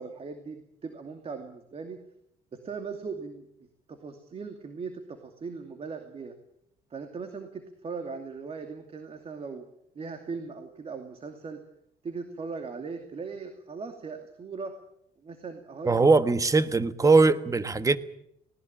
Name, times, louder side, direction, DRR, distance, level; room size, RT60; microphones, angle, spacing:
voice 1, 0.0-2.0 2.5-3.4 3.9-6.4 6.9-9.6 9.9-11.6 12.0-14.7 15.2-16.0, right 4 dB, 35° right, 7 dB, 2.6 m, -39 dB
voice 2, 15.8-18.0, right 3 dB, 20° right, 12 dB, 1.3 m, -21 dB
19.5 x 19.0 x 8.8 m, 0.74 s
cardioid pair, 110°, 17 cm